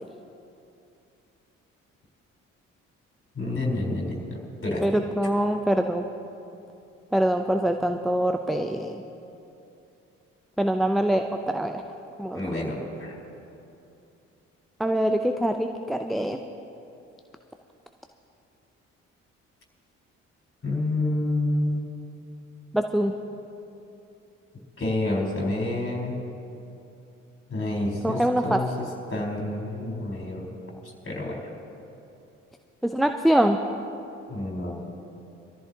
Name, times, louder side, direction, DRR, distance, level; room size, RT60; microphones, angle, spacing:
voice 1, 3.4-4.1 4.6-4.8 12.3-13.1 20.6-21.8 24.8-26.1 27.5-30.4 31.0-31.4 34.3-34.8, left 2 dB, 35° left, -2 dB, 4.1 m, -28 dB
voice 2, 4.8-6.0 7.1-8.9 10.6-11.8 12.2-12.4 14.8-16.4 22.7-23.1 28.0-28.6 32.9-33.6, right 1 dB, ahead, 6 dB, 0.6 m, -24 dB
22.5 x 14.0 x 2.9 m, 2.7 s
figure-of-eight pair, 45°, 38 cm